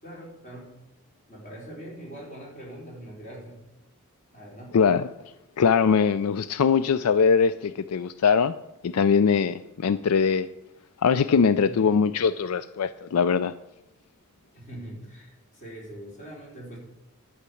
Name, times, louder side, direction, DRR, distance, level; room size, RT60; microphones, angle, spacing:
voice 1, 0.0-0.7 1.3-3.6 4.3-4.7 11.6-12.0 14.5-16.8, right 1 dB, 35° left, -3 dB, 4.3 m, -42 dB
voice 2, 4.7-5.1 5.6-8.5 8.8-10.5 11.0-13.5, left 6 dB, 75° left, 14 dB, 0.4 m, -22 dB
11.5 x 5.9 x 8.4 m, 0.96 s
head